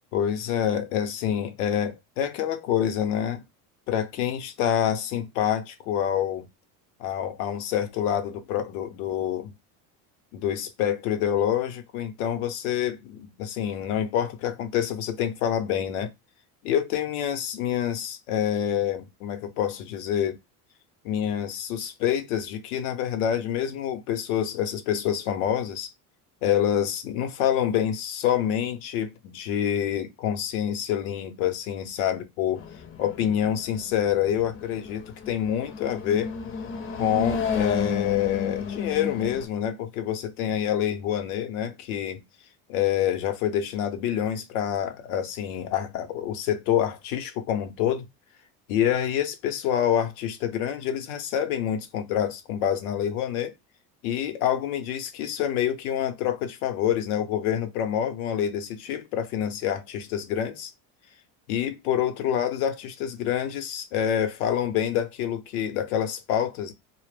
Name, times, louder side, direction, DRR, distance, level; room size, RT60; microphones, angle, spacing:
voice 1, 0.1-3.4 3.9-6.5 7.0-9.5 10.3-16.1 16.6-20.4 21.0-25.9 26.4-32.6 33.0-36.3 36.9-42.2 42.7-48.1 48.7-53.5 54.0-60.7 61.5-66.7, left 10 dB, 85° left, 0.7 m, -27 dB
sound 1, 32.6-39.5, left 6 dB, 30° left, 0.5 m, -32 dB
2.1 x 2.0 x 3.2 m
supercardioid pair, 110°, 43 cm